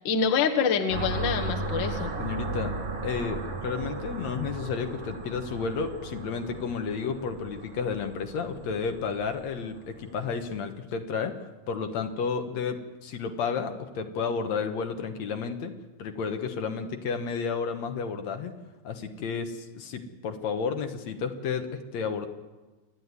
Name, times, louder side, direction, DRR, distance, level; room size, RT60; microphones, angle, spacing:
voice 1, 0.0-2.1, left 6 dB, 50° left, 4 dB, 1.7 m, -26 dB
sound 1, 0.9-10.5, right 2 dB, 50° right, 3.1 m, -36 dB
voice 2, 2.2-2.7 3.0-11.4 11.7-15.7 16.0-18.5 18.8-22.3, left 5 dB, 70° left, 6 dB, 2.5 m, -32 dB
27.5 x 10.0 x 9.8 m, 1.2 s
omnidirectional pair, 3.4 m